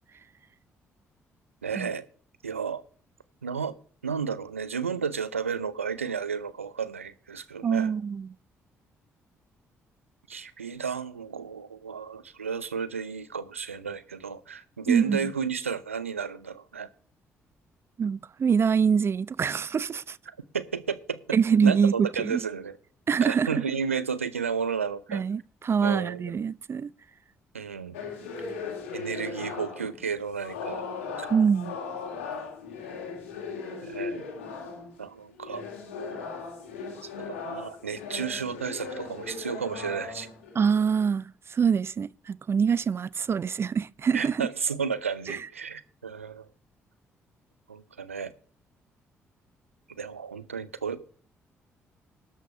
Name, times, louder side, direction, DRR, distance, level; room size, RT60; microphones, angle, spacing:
voice 1, 1.6-2.1 2.4-2.8 3.4-3.8 4.0-7.9 10.3-16.9 20.5-21.2 21.6-22.8 23.2-25.2 25.8-26.4 27.5-28.0 28.9-30.9 31.2-31.3 33.8-34.2 35.0-35.7 37.2-40.3 44.1-46.5 47.7-48.3 50.0-51.1, right 6 dB, 85° right, 0.6 m, -32 dB
voice 2, 7.6-8.3 14.9-15.3 18.0-20.2 21.3-22.4 23.1-23.6 25.1-26.9 31.3-31.8 40.5-44.5 45.3-45.4, right 6 dB, 35° right, 0.4 m, -25 dB
sound 1, 27.9-30.0 30.4-35.0 35.4-40.8, left 5 dB, 75° left, 2.1 m, -38 dB
13.0 x 5.7 x 6.5 m
figure-of-eight pair, 40°, 7 cm